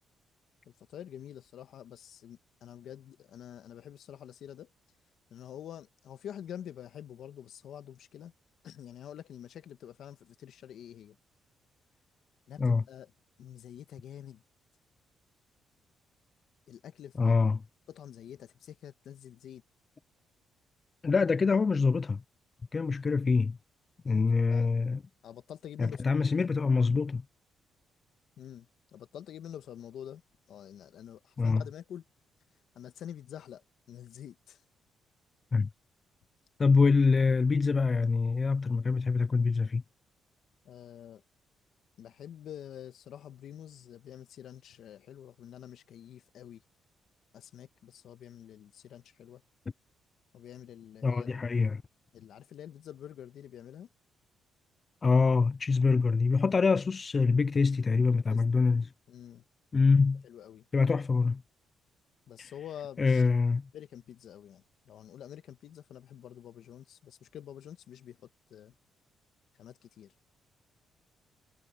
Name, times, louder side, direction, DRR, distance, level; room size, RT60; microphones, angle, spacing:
voice 1, 0.6-4.7 5.3-8.3 8.6-11.2 12.5-13.1 13.4-14.4 16.7-17.3 17.9-19.6 24.0-24.7 25.2-26.2 28.4-30.2 30.5-32.0 32.7-34.6 40.6-41.2 42.0-46.6 47.3-49.4 50.3-51.4 52.1-53.9 58.3-58.6 59.1-59.4 60.2-60.7 62.3-63.2 63.7-68.7 69.6-70.1, left 10 dB, 70° left, 1.6 m, -47 dB
voice 2, 17.2-17.6 21.0-22.2 22.7-23.6 24.0-25.0 25.8-27.2 31.4-31.6 35.5-35.7 36.6-39.8 51.0-51.8 55.0-58.9 59.7-60.2 60.7-61.4 62.4-62.5 63.0-63.7, left 4 dB, 35° left, 0.5 m, -25 dB
cardioid pair, 90°, 0 cm